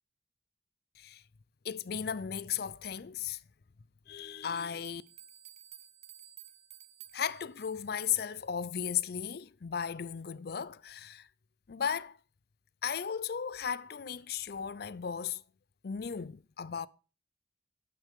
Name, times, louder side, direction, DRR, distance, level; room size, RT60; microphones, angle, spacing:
voice 1, 1.6-3.4 4.1-5.0 7.1-11.3 11.7-12.2 12.8-15.4 15.8-16.9, left 8 dB, 55° left, 0.4 m, -35 dB
sound 1, 4.3-4.4 4.7-8.4, right 11 dB, 35° right, 0.8 m, -54 dB
11.5 x 9.3 x 3.6 m
head